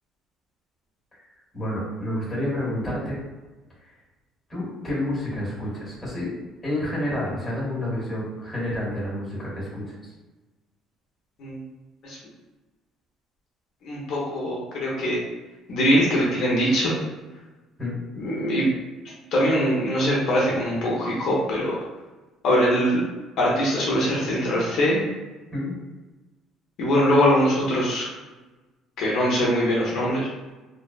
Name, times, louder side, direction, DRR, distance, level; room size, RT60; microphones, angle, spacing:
voice 1, 1.5-3.2 4.5-6.3 6.6-10.1 17.8-18.0 25.5-25.7, left 1 dB, 10° left, -7 dB, 1.0 m, -29 dB
voice 2, 13.8-15.2 15.7-16.9 18.2-18.7 19.0-21.8 22.4-23.0 23.4-25.0 26.8-28.0 29.0-30.3, equal, 60° left, -5 dB, 0.6 m, -22 dB
2.6 x 2.0 x 2.3 m, 1.2 s
cardioid pair, 145°, 0 cm